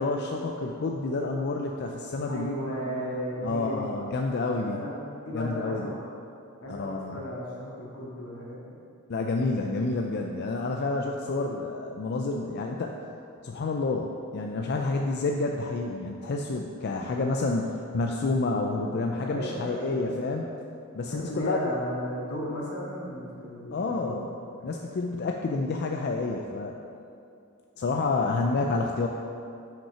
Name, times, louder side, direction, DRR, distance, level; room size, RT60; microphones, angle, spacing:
voice 1, 0.0-2.5 3.4-4.8 5.3-5.9 6.7-7.2 9.1-12.9 13.4-20.4 20.9-21.8 23.7-24.2 24.6-26.8 27.8-29.1, left 3 dB, 50° left, 2 dB, 0.4 m, -29 dB
voice 2, 2.3-3.9 4.5-4.9 5.2-6.1 6.6-8.8 19.2-20.2 21.1-24.3 24.6-24.7, equal, 80° left, -5 dB, 1.8 m, -35 dB
5.9 x 5.6 x 5.6 m, 2.6 s
head